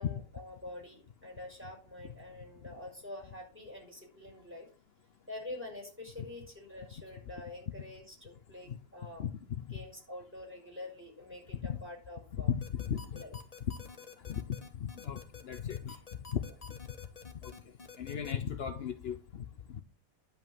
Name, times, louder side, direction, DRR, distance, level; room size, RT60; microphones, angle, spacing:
voice 1, 0.0-4.7 5.3-9.3 9.7-12.5 13.1-13.3, left 1 dB, 5° right, 5.6 m, -46 dB
voice 2, 12.4-13.2 13.6-13.8 14.3-14.4 14.8-16.0 16.3-16.4 17.4-17.5 18.0-19.8, left 8 dB, 70° left, 0.6 m, -36 dB
sound 1, 12.6-18.3, left 5 dB, 25° left, 1.2 m, -49 dB
10.5 x 5.7 x 7.5 m
omnidirectional pair, 2.1 m